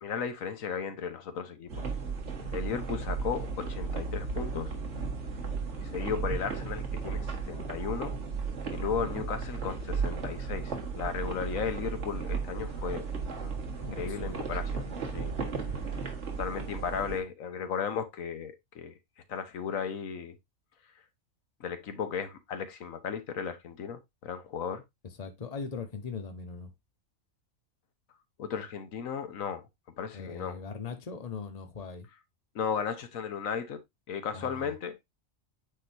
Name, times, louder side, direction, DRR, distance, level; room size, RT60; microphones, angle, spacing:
voice 1, 0.0-1.8 2.5-4.7 5.8-8.1 8.7-13.1 13.4-13.5 13.9-14.9 15.1-15.3 16.0-16.1 16.4-18.9 19.3-20.3 21.6-24.8 28.4-29.7 30.0-30.6 32.5-33.8 34.1-35.0, left 7 dB, 90° left, 1.4 m, -35 dB
sound 1, 1.7-17.2, right 5 dB, 60° right, 1.7 m, -35 dB
voice 2, 13.8-14.4 25.0-26.7 30.1-32.1 34.3-34.7, left 5 dB, 30° left, 1.0 m, -40 dB
8.9 x 4.0 x 2.6 m
omnidirectional pair, 1.4 m